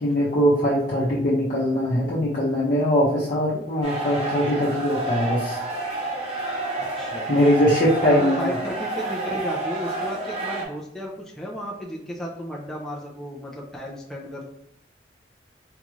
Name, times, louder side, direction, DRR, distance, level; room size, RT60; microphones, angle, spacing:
voice 1, 0.0-5.6 7.3-8.6, equal, 50° left, -7 dB, 0.6 m, -21 dB
sound 1, 3.8-10.6, right 2 dB, 35° right, 0.8 m, -29 dB
voice 2, 6.8-7.6 8.1-14.4, equal, 5° left, -3 dB, 0.4 m, -34 dB
3.8 x 2.4 x 3.0 m, 0.75 s
head